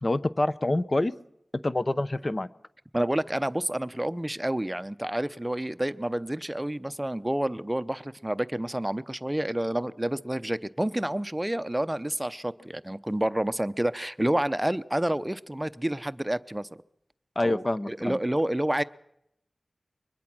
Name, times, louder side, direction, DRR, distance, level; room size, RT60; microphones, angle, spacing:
voice 1, 0.0-1.1 1.6-2.5 17.4-18.2, left 2 dB, 40° left, 13 dB, 0.8 m, -26 dB
voice 2, 2.9-16.7 17.4-18.8, right 1 dB, 15° right, 14 dB, 0.7 m, -29 dB
23.5 x 21.0 x 6.1 m, 0.79 s
wide cardioid pair, 50°, 0 cm